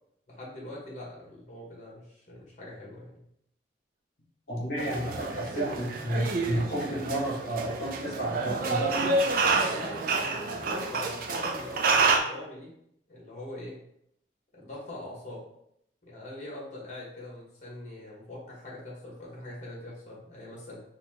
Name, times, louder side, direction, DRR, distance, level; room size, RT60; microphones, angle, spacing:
voice 1, 0.3-3.2 9.7-12.7 13.1-13.8 14.5-15.4 16.0-20.8, left 1 dB, 40° left, -4 dB, 1.3 m, -42 dB
voice 2, 4.5-9.1, equal, 60° left, -6 dB, 1.1 m, -32 dB
sound 1, 4.8-12.2, right 3 dB, 50° right, 0.4 m, -28 dB
4.2 x 2.6 x 2.8 m, 0.75 s
head